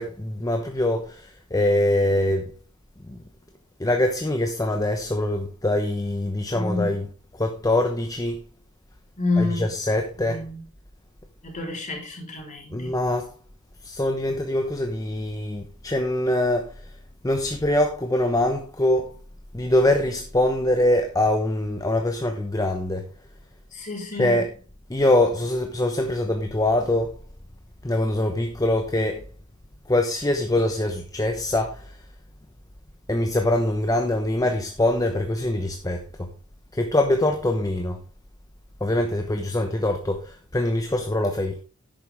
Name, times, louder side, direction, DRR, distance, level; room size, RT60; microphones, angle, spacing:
voice 1, 0.0-2.5 3.1-3.2 3.8-7.1 7.3-8.4 9.4-10.5 12.7-13.3 13.8-16.9 17.2-19.1 19.5-23.1 24.2-24.5 24.9-27.2 27.8-29.2 29.9-32.0 33.1-36.3 36.7-38.0 38.8-41.6, left 1 dB, 15° left, 0.9 m, -23 dB
voice 2, 6.5-6.9 9.2-9.6 10.3-10.6 11.4-12.9 23.7-24.4, left 2 dB, 35° left, 3.8 m, -28 dB
11.0 x 8.9 x 3.5 m
head